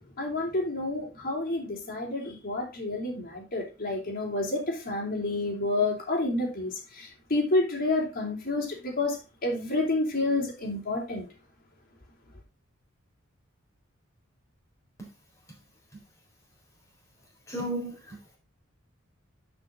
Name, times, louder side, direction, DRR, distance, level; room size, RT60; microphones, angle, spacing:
voice 1, 0.0-11.3, left 2 dB, 45° left, 3.3 m, -29 dB
voice 2, 17.5-18.4, right 1 dB, 15° left, 3.9 m, -34 dB
11.0 x 5.4 x 4.0 m
head